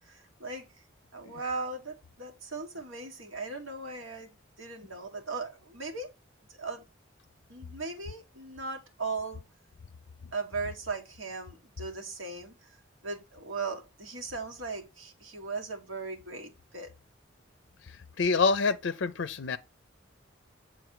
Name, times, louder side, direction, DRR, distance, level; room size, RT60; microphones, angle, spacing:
voice 1, 0.1-0.7 1.1-6.1 6.6-6.8 7.5-9.4 10.3-12.7 13.0-16.9, right 3 dB, 80° right, 1.6 m, -38 dB
voice 2, 17.8-19.6, left 4 dB, 60° left, 0.5 m, -27 dB
8.1 x 3.8 x 4.7 m
head